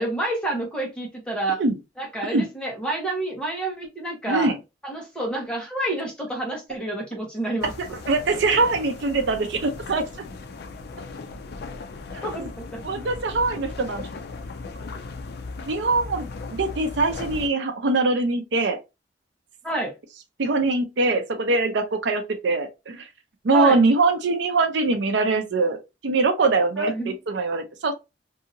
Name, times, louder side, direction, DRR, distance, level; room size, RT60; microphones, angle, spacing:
voice 1, 0.0-1.6 2.0-4.5 4.8-7.7 12.2-12.8 19.6-20.0 23.5-23.8 26.8-27.1, right 2 dB, 5° left, 1.0 m, -29 dB
voice 2, 4.3-4.6 8.1-10.0 12.8-14.1 15.7-18.8 20.4-23.1 23.4-25.8 26.0-27.9, right 3 dB, 75° right, 0.5 m, -22 dB
sound 1, 7.6-17.5, left 3 dB, 60° left, 0.4 m, -37 dB
2.7 x 2.7 x 2.5 m
head